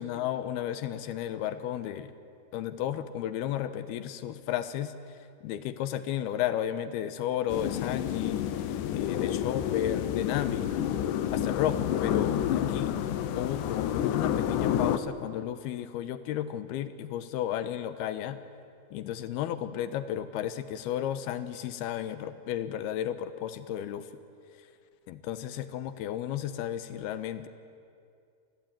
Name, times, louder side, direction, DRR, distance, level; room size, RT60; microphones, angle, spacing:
voice 1, 0.0-2.1 2.5-8.5 8.9-10.7 11.3-13.0 13.4-18.4 18.9-24.1 24.5-24.6 25.1-27.5, left 11 dB, 90° left, 12 dB, 3.0 m, -33 dB
sound 1, 7.5-15.0, left 10 dB, 70° left, 2.2 m, -29 dB
26.5 x 20.0 x 9.1 m, 2.4 s
omnidirectional pair, 4.4 m